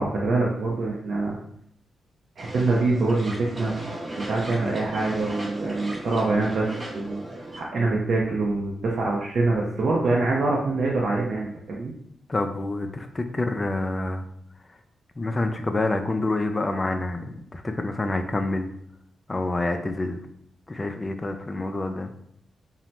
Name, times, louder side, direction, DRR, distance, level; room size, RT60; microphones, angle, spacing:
voice 1, 0.0-1.4 2.4-3.8 4.2-7.2 7.5-11.9, right 3 dB, 70° right, -3 dB, 0.4 m, -25 dB
sound 1, 2.4-7.6, right 1 dB, 35° right, 0.7 m, -36 dB
voice 2, 12.3-14.3 15.2-18.7 19.3-20.2 20.7-22.1, left 2 dB, 30° left, 6 dB, 0.4 m, -27 dB
2.7 x 2.0 x 3.2 m, 0.71 s
cardioid pair, 60°, 0 cm